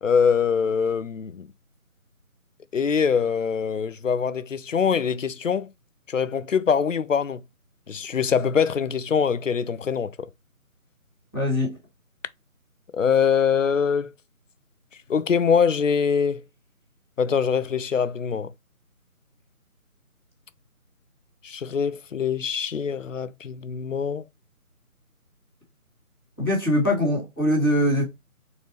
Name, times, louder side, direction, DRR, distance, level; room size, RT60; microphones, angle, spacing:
voice 1, 0.0-1.5 2.7-5.7 6.1-7.4 7.9-10.1 12.9-14.1 15.1-16.4 17.2-18.5 21.4-24.2, left 6 dB, 60° left, 0.5 m, -23 dB
voice 2, 11.3-11.7 26.4-28.0, equal, 5° right, 1.4 m, -22 dB
4.0 x 3.9 x 3.1 m
figure-of-eight pair, 170°, 43 cm